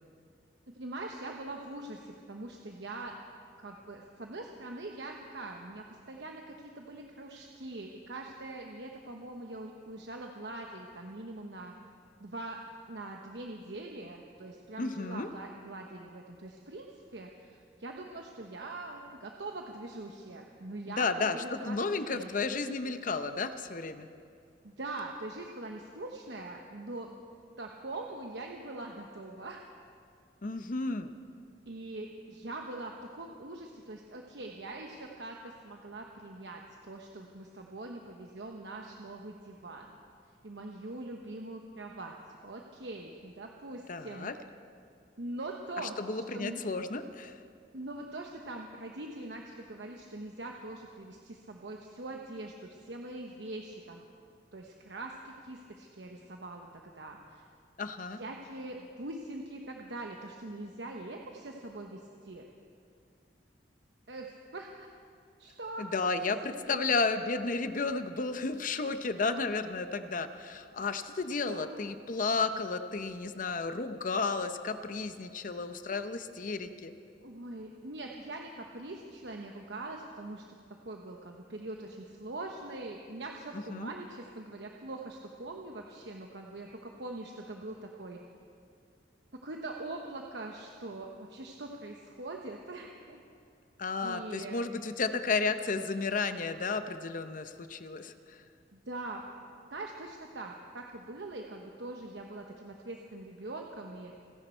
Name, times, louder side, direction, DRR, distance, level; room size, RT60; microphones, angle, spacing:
voice 1, 0.7-3.1 3.6-11.7 12.2-12.6 12.9-21.8 22.1-22.3 24.6-27.1 27.6-29.6 30.6-30.7 31.7-39.9 40.4-42.1 42.4-44.3 45.2-46.6 47.7-54.1 54.5-57.4 58.2-62.5 64.1-64.9 65.4-65.9 66.2-66.8 71.4-71.8 77.2-80.4 80.8-88.2 89.4-93.2 94.0-94.6 98.7-99.3 99.7-104.1, right 2 dB, 75° right, 1 dB, 1.0 m, -43 dB
voice 2, 14.8-15.3 20.9-24.1 30.4-31.1 43.9-44.3 45.8-47.3 57.8-58.2 65.8-76.9 83.5-83.9 93.8-98.4, left 4 dB, 50° left, 10 dB, 0.7 m, -33 dB
29.5 x 10.5 x 4.5 m, 2.4 s
head